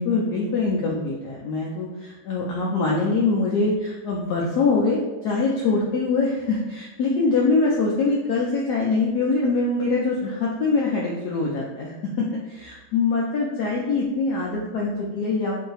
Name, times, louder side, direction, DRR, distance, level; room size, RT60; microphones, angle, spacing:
voice 1, 0.0-15.6, left 3 dB, 75° left, -3 dB, 0.9 m, -23 dB
3.1 x 2.7 x 3.9 m, 1.2 s
omnidirectional pair, 2.2 m